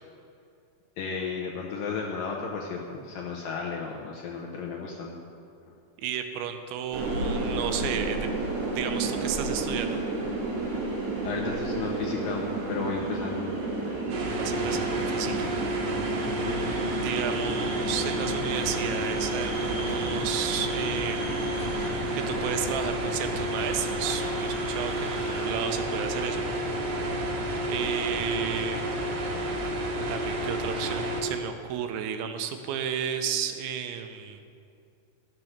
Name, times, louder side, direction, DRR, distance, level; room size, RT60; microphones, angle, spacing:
voice 1, 1.0-5.2 10.7-10.9 11.2-13.5 16.3-16.6 30.7-30.8, left 5 dB, 75° left, -2 dB, 2.1 m, -34 dB
voice 2, 6.0-8.3 8.7-10.0 14.3-15.6 16.3-16.5 17.0-21.4 21.8-26.4 27.1-29.1 30.1-34.4, right 8 dB, 90° right, 7 dB, 3.1 m, -33 dB
sound 1, 6.9-25.5, right 2 dB, 50° right, 2.8 m, -33 dB
sound 2, 14.1-31.2, right 1 dB, 65° right, 3.1 m, -30 dB
sound 3, 16.4-28.3, left 2 dB, 35° left, 1.7 m, -46 dB
13.5 x 7.5 x 6.6 m, 2.4 s
omnidirectional pair, 5.1 m